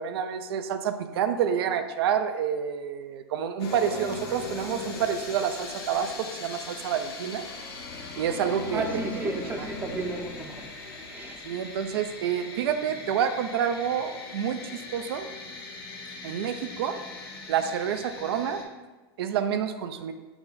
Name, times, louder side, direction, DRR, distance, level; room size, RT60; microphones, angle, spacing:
voice 1, 0.0-7.5 8.2-8.8 11.4-15.3 16.2-17.0 17.5-18.6 19.2-20.1, right 8 dB, 75° right, 9 dB, 0.4 m, -28 dB
sound 1, 3.6-18.6, left 3 dB, 75° left, 0.9 m, -39 dB
voice 2, 8.7-10.7 11.1-11.4, right 2 dB, 15° right, 4 dB, 0.5 m, -32 dB
5.9 x 2.1 x 3.9 m, 1.2 s
hypercardioid pair, 120°, 13 cm